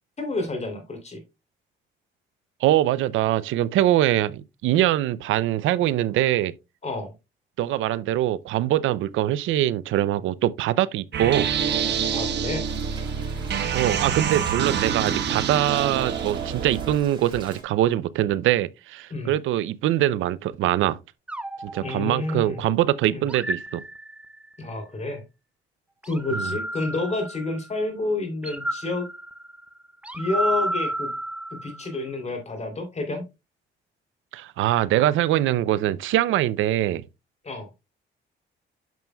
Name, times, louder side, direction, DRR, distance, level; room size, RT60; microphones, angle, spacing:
voice 1, 0.2-1.2 6.8-7.1 12.1-12.6 19.1-19.3 21.8-22.7 23.1-23.2 24.6-25.2 26.0-29.1 30.1-31.1 31.5-33.2 37.4-37.7, left 2 dB, 35° left, 3.1 m, -29 dB
voice 2, 2.6-6.5 7.6-11.5 13.7-21.0 21.6-23.8 26.3-26.5 34.3-37.0, right 13 dB, 85° right, 0.5 m, -23 dB
sound 1, 11.1-17.0, right 7 dB, 60° right, 1.2 m, -26 dB
Rain, 12.6-17.6, right 3 dB, 25° right, 4.9 m, -45 dB
sound 2, 21.3-22.6 23.3-24.6 26.0-27.8 28.4-31.9, right 1 dB, 5° right, 0.6 m, -32 dB
9.1 x 6.9 x 2.2 m
cardioid pair, 90°, 20 cm